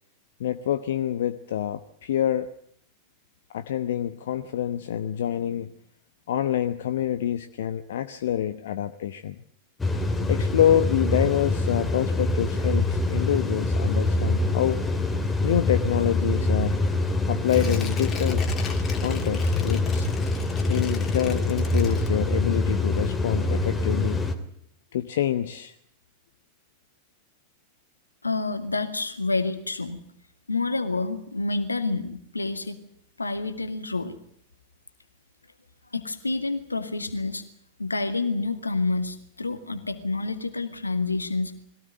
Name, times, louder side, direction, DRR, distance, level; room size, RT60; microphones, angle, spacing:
voice 1, 0.4-2.5 3.5-5.7 6.3-9.4 10.3-14.8 15.4-16.8 17.3-18.4 19.0-20.1 20.7-24.2 24.9-25.7, left 10 dB, 60° left, 10 dB, 1.0 m, -26 dB
sound 1, 9.8-24.3, left 2 dB, 10° left, 2.7 m, -25 dB
Tearing, 17.4-22.6 22.9-23.0, left 6 dB, 25° left, 3.4 m, -39 dB
voice 2, 28.2-30.0 30.5-32.8 33.2-34.2 35.9-37.4 37.8-41.5, left 3 dB, 80° left, 10 dB, 2.1 m, -28 dB
21.5 x 17.5 x 9.1 m, 0.67 s
figure-of-eight pair, 90°, 0 cm